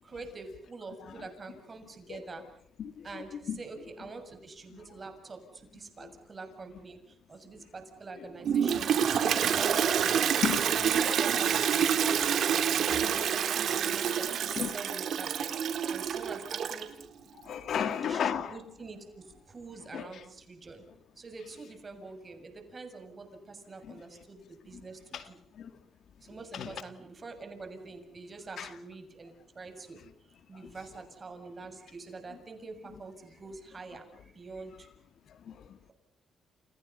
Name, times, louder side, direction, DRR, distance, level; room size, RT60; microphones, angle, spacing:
voice 1, 0.0-2.4 3.0-10.2 10.6-12.3 12.9-16.9 18.0-20.8 21.2-25.4 26.2-30.0 30.5-34.9, right 3 dB, 35° right, 6 dB, 7.1 m, -45 dB
voice 2, 2.8-3.6 6.0-6.1 8.2-8.3 10.4-10.6 14.1-14.7 17.4-18.6 19.9-20.2 23.8-24.0 25.1-25.3 25.5-25.7 26.5-26.8 28.6-28.7 30.5-30.7 35.3-35.8, left 8 dB, 65° left, 10 dB, 2.1 m, -34 dB
Toilet flush, 8.4-17.0, right 8 dB, 65° right, 3.3 m, -27 dB
30.0 x 30.0 x 5.6 m, 0.67 s
cardioid pair, 90°, 0 cm